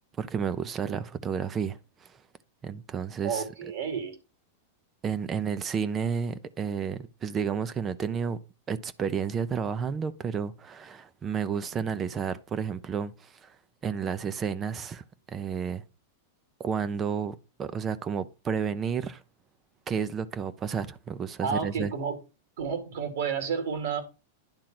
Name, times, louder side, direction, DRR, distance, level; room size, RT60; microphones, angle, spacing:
voice 1, 0.2-1.8 2.6-3.4 5.0-8.4 8.7-13.5 13.8-15.8 16.6-19.2 19.9-21.9, right 6 dB, 25° right, 0.8 m, -31 dB
voice 2, 3.2-4.2 21.4-22.2 22.6-24.0, right 6 dB, 70° right, 2.6 m, -31 dB
10.5 x 3.7 x 6.1 m
hypercardioid pair, 105°, 0 cm